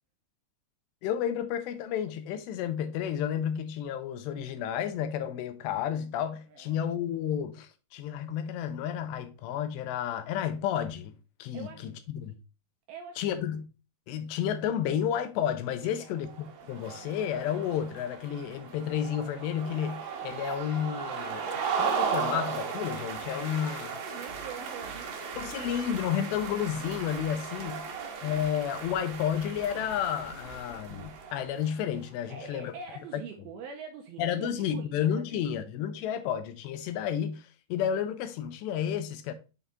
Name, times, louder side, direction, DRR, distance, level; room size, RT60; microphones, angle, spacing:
voice 1, 1.0-11.1 11.4-12.4 13.2-13.7 14.1-21.4 21.8-24.0 25.4-27.8 28.2-32.7 34.2-39.3, left 9 dB, 85° left, 2.8 m, -31 dB
voice 2, 6.5-6.9 11.5-12.0 12.3-12.4 12.9-13.2 15.8-16.2 24.1-25.6 27.5-28.0 32.3-35.6, right 5 dB, 85° right, 2.2 m, -45 dB
sound 1, 16.2-31.8, right 6 dB, 70° right, 2.3 m, -36 dB
7.0 x 3.6 x 3.9 m
omnidirectional pair, 5.0 m